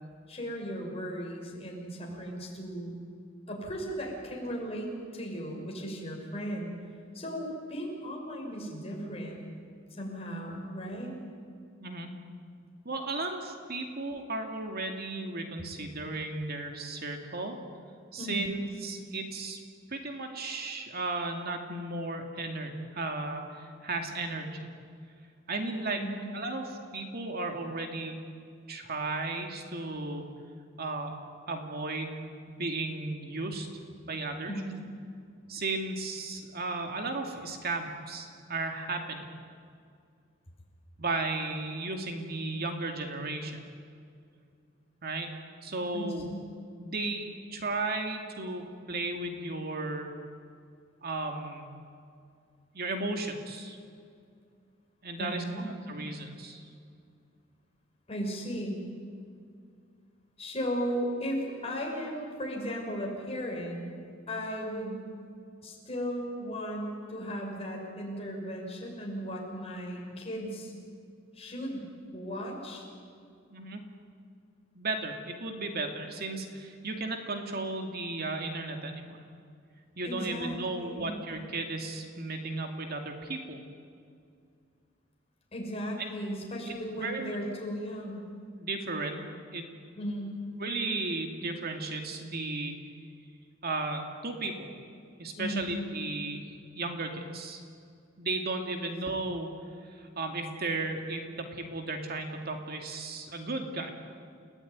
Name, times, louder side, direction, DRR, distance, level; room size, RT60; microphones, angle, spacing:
voice 1, 0.3-2.9 3.5-6.7 7.1-9.4 9.9-11.1 18.2-18.5 26.0-26.2 34.4-34.7 45.9-46.3 48.6-48.8 55.2-55.6 58.1-58.8 60.4-63.9 64.3-65.0 65.6-70.7 71.3-71.9 72.1-72.9 80.0-81.2 85.5-88.2 90.0-90.3 95.4-95.7, equal, 30° left, -1 dB, 6.2 m, -36 dB
voice 2, 12.8-17.6 18.1-19.6 19.9-24.7 25.5-26.0 26.3-28.2 28.7-30.2 30.8-31.2 31.5-32.2 32.5-33.7 34.1-34.5 35.5-39.2 41.0-43.6 45.0-45.3 45.6-46.3 46.8-50.1 51.0-51.7 52.7-53.8 55.0-55.4 55.9-56.7 73.5-73.8 74.7-79.2 80.0-83.6 86.7-87.4 88.6-89.2 89.5-89.6 90.6-92.7 93.6-94.7 95.2-96.4 96.7-97.6 98.2-99.5 99.9-103.9, right 2 dB, 50° right, 4 dB, 2.5 m, -35 dB
30.0 x 17.0 x 9.6 m, 2.3 s
head